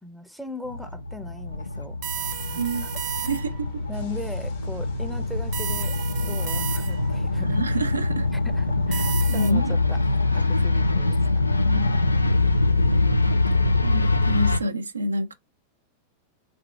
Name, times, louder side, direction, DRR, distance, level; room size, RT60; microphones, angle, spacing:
voice 1, 0.0-2.9 3.2-3.4 3.9-7.6 8.3-10.0 10.3-11.4 13.5-13.7, left 1 dB, ahead, 0.6 m, -39 dB
sound 1, 0.7-14.6, left 2 dB, 80° left, 0.4 m, -24 dB
sound 2, 2.0-3.7 5.5-7.2 8.9-9.5, right 11 dB, 45° right, 0.7 m, -33 dB
sound 3, 2.2-8.9, left 6 dB, 60° left, 1.3 m, -46 dB
voice 2, 3.3-3.7 7.4-8.3 9.3-9.7 11.7-12.3 13.8-15.3, right 1 dB, 75° right, 0.4 m, -28 dB
3.5 x 3.4 x 3.4 m
figure-of-eight pair, 90°, 0 cm